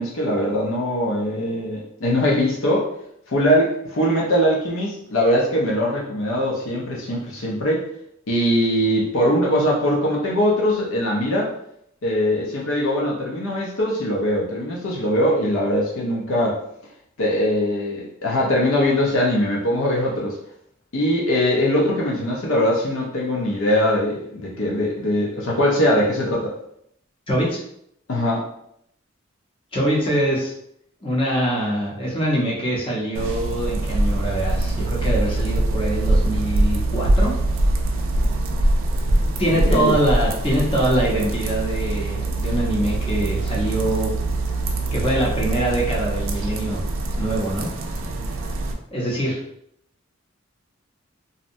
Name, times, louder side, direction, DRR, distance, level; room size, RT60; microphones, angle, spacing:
voice 1, 0.0-2.9 3.3-7.8 8.3-11.5 12.0-16.6 17.2-20.4 20.9-26.5 28.1-28.5 39.7-39.9, equal, 75° left, -3 dB, 0.6 m, -21 dB
voice 2, 27.3-27.6 29.7-30.5 31.0-37.3 39.4-44.1 44.9-46.8 47.2-47.7 48.9-49.4, right 1 dB, 25° left, -4 dB, 0.6 m, -23 dB
sound 1, 33.1-48.7, right 1 dB, 80° right, 0.4 m, -23 dB
2.6 x 2.1 x 2.6 m, 0.72 s
head